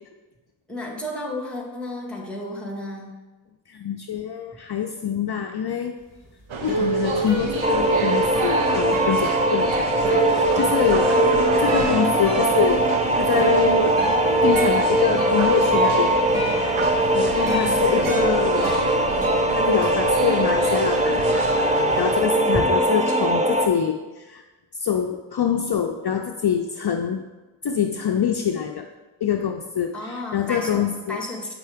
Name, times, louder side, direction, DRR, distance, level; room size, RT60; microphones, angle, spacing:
voice 1, 0.7-3.1 11.1-11.7 17.2-17.9 22.7-23.3 29.9-31.5, left 1 dB, ahead, -1 dB, 1.7 m, -34 dB
voice 2, 3.7-5.9 6.6-11.1 11.6-12.9 13.1-13.9 14.4-16.1 17.1-18.7 19.5-24.4 24.8-27.2 27.6-28.9 29.2-31.2, left 8 dB, 55° left, 4 dB, 0.5 m, -25 dB
sound 1, 6.1-20.9 21.2-22.6, right 3 dB, 45° right, 2.5 m, -29 dB
sound 2, 6.5-22.2, right 4 dB, 80° right, 0.8 m, -31 dB
sound 3, 7.6-23.7, right 1 dB, 15° right, 0.6 m, -21 dB
7.7 x 5.5 x 3.4 m, 1.2 s
wide cardioid pair, 55°, 47 cm